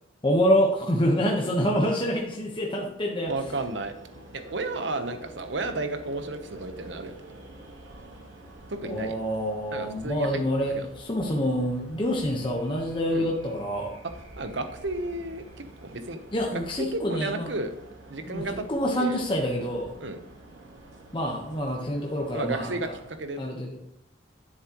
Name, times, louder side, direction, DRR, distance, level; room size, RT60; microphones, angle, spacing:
voice 1, 0.2-3.3 8.8-13.9 16.3-17.5 18.3-19.9 21.1-22.8 23.4-23.8, equal, 25° left, -1 dB, 1.2 m, -26 dB
voice 2, 3.2-3.9 4.3-7.1 8.7-9.2 9.7-10.9 13.1-13.3 14.4-16.2 16.9-17.7 18.1-18.7 19.0-19.2 20.0-20.2 22.3-23.4, right 2 dB, 65° right, 8 dB, 1.0 m, -33 dB
sound 1, 3.2-23.1, right 1 dB, 85° right, 2.6 m, -48 dB
10.0 x 7.5 x 3.1 m, 0.81 s
head